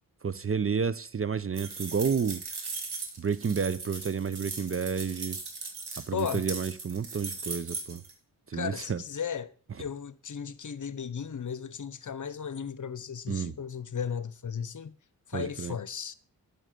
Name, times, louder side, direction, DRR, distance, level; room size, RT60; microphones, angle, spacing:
voice 1, 0.2-2.4 3.2-5.4 6.1-8.0 8.5-9.0 13.3-13.5 15.3-15.7, right 6 dB, 35° right, 0.6 m, -30 dB
sound 1, 1.6-8.1, right 4 dB, 70° right, 2.6 m, -38 dB
voice 2, 6.1-6.4 8.5-9.5 9.8-14.9 15.3-16.1, left 7 dB, 50° left, 0.9 m, -35 dB
8.9 x 6.5 x 6.5 m
cardioid pair, 50°, 40 cm